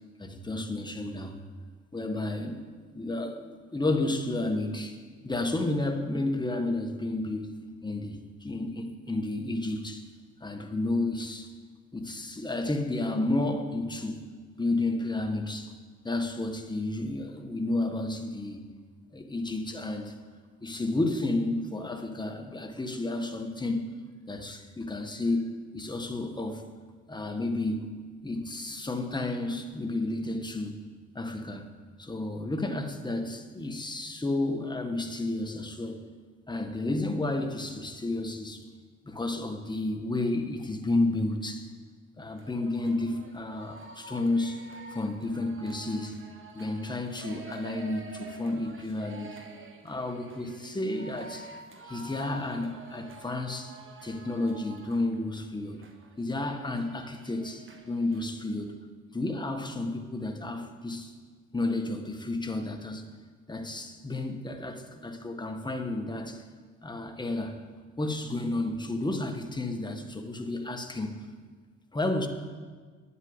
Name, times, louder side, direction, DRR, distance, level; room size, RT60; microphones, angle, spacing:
voice 1, 0.2-1.4 1.9-2.6 2.9-5.0 5.2-10.1 10.4-11.5 11.9-14.3 14.6-15.7 16.0-18.6 19.1-20.1 20.6-23.9 24.3-26.6 27.1-27.9 28.2-30.8 31.1-31.7 32.0-36.0 36.5-38.6 39.0-41.7 42.2-46.2 46.5-49.4 49.8-51.5 51.9-55.8 56.2-58.8 59.1-61.1 61.5-63.0 63.5-66.4 66.8-67.6 68.0-71.2 71.9-72.3, left 2 dB, 15° left, 1.5 m, -31 dB
sound 1, 42.3-58.4, right 2 dB, 40° right, 1.6 m, -48 dB
9.5 x 8.4 x 9.8 m
cardioid pair, 90°, 30 cm